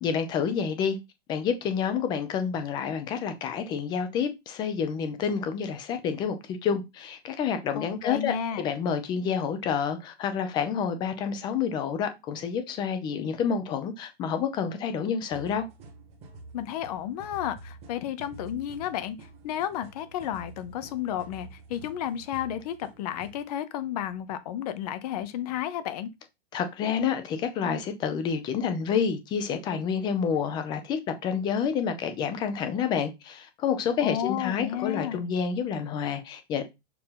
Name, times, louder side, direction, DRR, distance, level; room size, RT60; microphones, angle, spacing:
voice 1, 0.0-1.0 1.3-15.7 26.5-36.6, left 7 dB, 15° left, 0.5 m, -29 dB
voice 2, 7.7-8.7 16.5-19.2 19.4-26.1 34.0-35.2, left 10 dB, 40° left, 0.8 m, -32 dB
sound 1, 15.3-23.4, right 2 dB, 20° right, 1.6 m, -48 dB
6.8 x 2.8 x 5.6 m
supercardioid pair, 165°, 32 cm